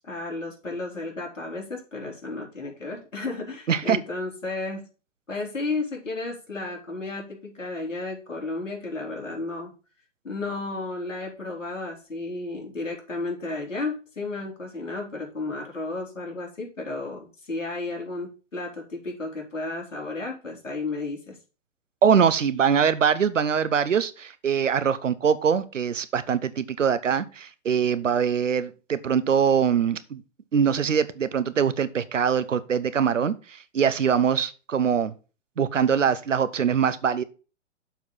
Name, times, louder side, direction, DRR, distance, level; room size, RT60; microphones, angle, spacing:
voice 1, 0.0-4.9 5.3-9.7 10.2-21.4, left 3 dB, 85° left, 3.6 m, -33 dB
voice 2, 22.0-30.2 30.5-35.1 35.6-37.2, right 7 dB, 85° right, 0.9 m, -23 dB
7.2 x 4.6 x 5.6 m
hypercardioid pair, 125°, 37 cm